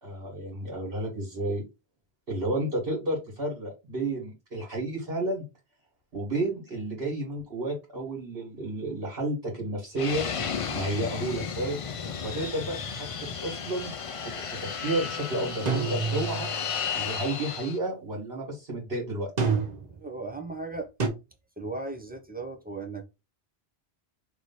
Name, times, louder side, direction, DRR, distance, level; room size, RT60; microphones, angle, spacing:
voice 1, 0.0-1.6 2.3-5.4 6.1-10.3 10.7-11.8 12.2-13.9 14.2-16.5 16.9-19.3, right 1 dB, 70° right, 1.9 m, -31 dB
Fixed-wing aircraft airplane, 10.0-17.8, left 6 dB, 45° left, 0.4 m, -34 dB
sound 1, 15.7-16.6 19.4-20.0 21.0-21.1, right 5 dB, 45° right, 0.9 m, -27 dB
voice 2, 19.9-20.9 21.6-23.0, right 3 dB, 10° right, 0.7 m, -36 dB
3.3 x 3.1 x 4.1 m
omnidirectional pair, 1.0 m